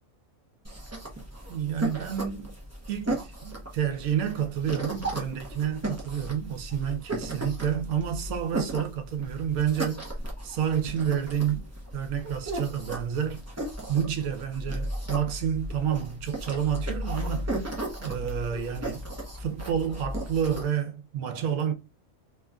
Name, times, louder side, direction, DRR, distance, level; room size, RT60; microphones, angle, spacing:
sound 1, 0.6-20.6, right 1 dB, 20° right, 0.5 m, -35 dB
voice 1, 1.5-2.5 2.9-10.2 10.4-11.7 11.9-17.7 18.0-19.1 19.4-21.7, right 9 dB, 80° right, 1.1 m, -29 dB
2.9 x 2.5 x 2.2 m
omnidirectional pair, 1.5 m